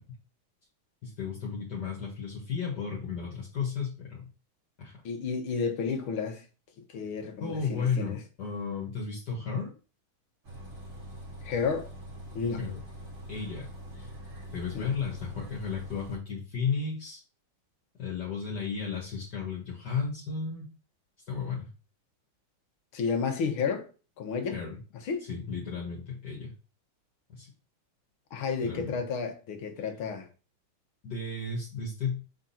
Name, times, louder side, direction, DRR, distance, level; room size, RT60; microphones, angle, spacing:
voice 1, 1.0-4.3 4.8-4.9 7.4-9.7 12.6-12.8 13.3-14.1 14.5-17.2 18.0-20.7 21.3-21.7 24.5-24.8 25.3-26.5 27.3-27.5 28.6-29.0 31.0-32.2, left 5 dB, 55° left, 2.4 m, -34 dB
voice 2, 5.1-6.5 6.9-8.2 11.4-11.9 12.3-12.6 14.8-14.9 22.9-23.9 24.2-24.6 25.0-25.3 28.3-30.3, left 5 dB, 85° left, 1.9 m, -31 dB
Bus, 10.4-16.2, equal, 75° right, 4.0 m, -44 dB
7.2 x 3.9 x 4.3 m
omnidirectional pair, 2.2 m